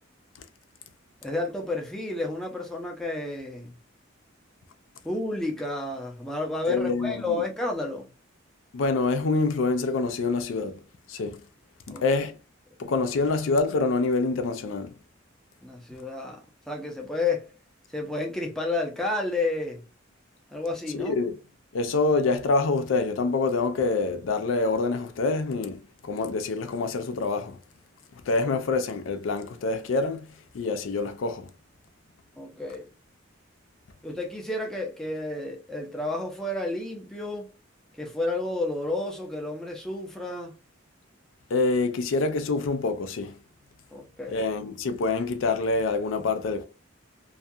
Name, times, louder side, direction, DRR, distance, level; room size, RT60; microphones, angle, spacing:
voice 1, 1.2-3.7 5.0-8.1 11.9-12.0 15.6-17.5 17.9-19.8 20.5-21.2 28.4-28.5 32.4-32.9 34.0-37.5 38.0-40.5 43.9-44.4, left 2 dB, ahead, 0.6 m, -31 dB
voice 2, 6.7-7.4 8.7-10.8 11.1-11.4 11.9-12.3 12.8-14.9 20.9-21.3 21.7-27.6 28.3-30.3 30.5-31.5 41.5-43.4 44.3-46.7, left 3 dB, 75° left, 0.4 m, -26 dB
2.4 x 2.3 x 2.6 m
head